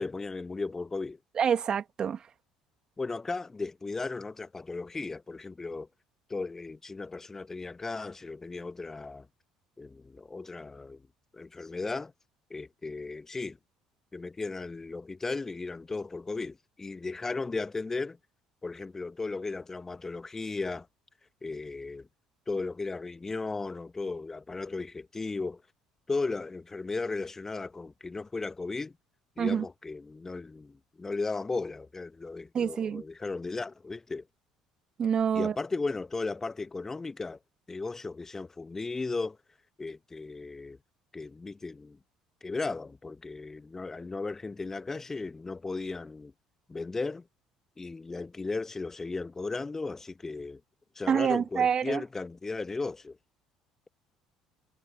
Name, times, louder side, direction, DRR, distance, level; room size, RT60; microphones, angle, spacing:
voice 1, 0.0-1.2 3.0-5.9 6.3-9.3 9.8-11.0 11.3-12.1 12.5-13.6 14.1-18.2 18.6-20.9 21.4-22.1 22.5-25.6 26.1-28.9 29.4-34.2 35.3-37.4 37.7-39.4 39.8-40.8 41.1-42.0 42.4-46.3 46.7-47.2 47.8-50.6 51.0-53.2, left 3 dB, 20° left, 1.9 m, -36 dB
voice 2, 1.4-2.2 29.4-29.7 32.5-33.0 35.0-35.5 51.1-52.0, right 7 dB, 40° right, 2.4 m, -27 dB
figure-of-eight pair, 55°, 2 cm